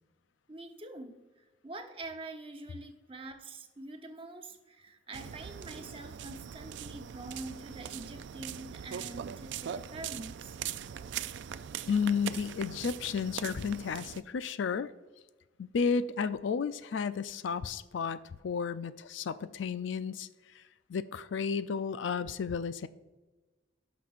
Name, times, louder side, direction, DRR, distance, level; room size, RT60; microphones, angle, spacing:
voice 1, 0.5-1.2 1.6-10.5, right 2 dB, 30° right, 5 dB, 0.8 m, -45 dB
sound 1, 5.1-14.2, right 8 dB, 75° right, 0.4 m, -41 dB
voice 2, 11.9-14.9 15.6-20.3 20.9-22.9, left 6 dB, 85° left, 14 dB, 0.4 m, -32 dB
16.5 x 6.1 x 2.5 m, 1.2 s
head